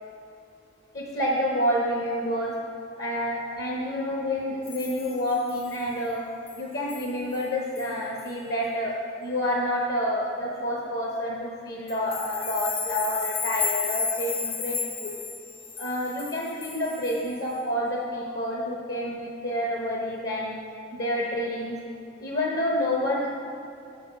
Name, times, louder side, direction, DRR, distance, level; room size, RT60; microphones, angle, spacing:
voice 1, 0.9-2.5 3.0-6.3 6.6-15.1 15.8-20.6 20.9-21.7 22.2-23.3, equal, 55° left, -3 dB, 0.9 m, -28 dB
sound 1, 4.6-5.8 6.5-6.6 6.9-7.1 7.3-7.5 7.8-7.9 8.2-8.3 11.9-17.3, left 6 dB, 30° left, 0.6 m, -33 dB
6.9 x 5.8 x 5.3 m, 2.6 s
head